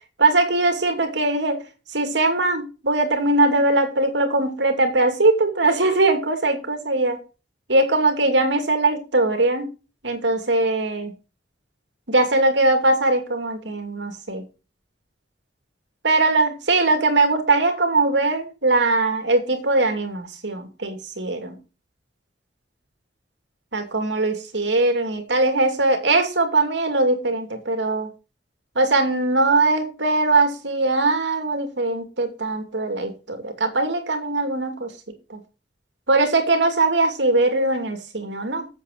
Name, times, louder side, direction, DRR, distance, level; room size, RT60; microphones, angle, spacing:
voice 1, 0.2-1.6 1.9-7.2 7.7-9.7 10.0-11.1 12.1-14.4 16.0-21.5 23.7-28.1 28.8-34.9 35.3-35.4 36.1-38.7, right 2 dB, 75° right, 6 dB, 2.6 m, -21 dB
8.5 x 7.7 x 6.6 m, 0.33 s
head